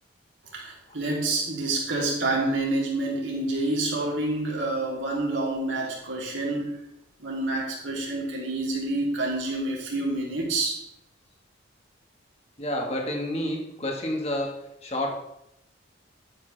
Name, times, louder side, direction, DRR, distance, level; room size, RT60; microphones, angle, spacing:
voice 1, 0.5-6.7 7.2-10.8, right 2 dB, 75° right, -3 dB, 3.3 m, -28 dB
voice 2, 12.6-15.1, left 1 dB, 30° left, 1 dB, 1.8 m, -29 dB
11.0 x 9.8 x 3.5 m, 0.81 s
head